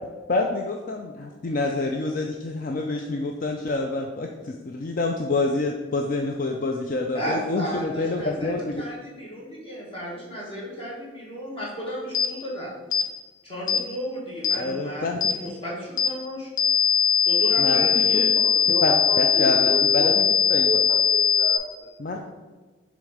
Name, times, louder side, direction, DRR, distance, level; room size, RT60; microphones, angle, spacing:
voice 1, 0.3-8.8 14.5-15.2 17.6-18.2 18.8-20.8 22.0-22.2, left 2 dB, 45° left, 2 dB, 0.4 m, -27 dB
voice 2, 7.1-12.7 13.4-16.5 17.2-18.3, equal, 30° left, -5 dB, 1.9 m, -34 dB
sound 1, 12.1-12.3 12.9-13.1 13.7-13.8 14.4-14.6 15.2-15.4 16.0-16.1 16.6-21.6, left 7 dB, 80° left, 0.8 m, -20 dB
voice 3, 18.4-20.2 20.5-21.6, right 1 dB, 20° right, 1 dB, 0.5 m, -32 dB
6.7 x 3.1 x 4.8 m, 1.3 s
head